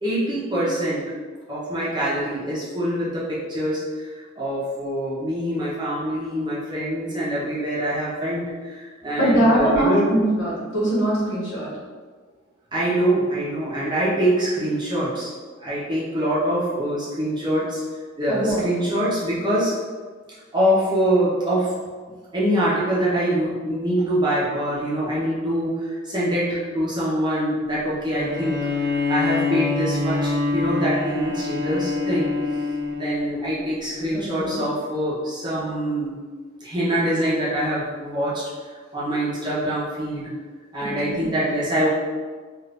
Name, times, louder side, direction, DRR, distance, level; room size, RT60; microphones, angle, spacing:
voice 1, 0.0-1.1 1.5-3.8 4.4-10.2 12.7-15.3 15.6-17.8 18.2-19.7 20.5-21.7 22.3-32.5 32.9-36.1 36.6-38.4 38.9-40.3 40.7-41.9, right 1 dB, 20° right, -8 dB, 0.7 m, -24 dB
voice 2, 9.2-11.7 18.3-18.6 34.1-34.6 40.8-41.3, right 1 dB, 60° left, -7 dB, 1.1 m, -22 dB
Bowed string instrument, 28.1-33.6, left 3 dB, 60° right, 0.8 m, -25 dB
2.5 x 2.5 x 3.3 m, 1.5 s
head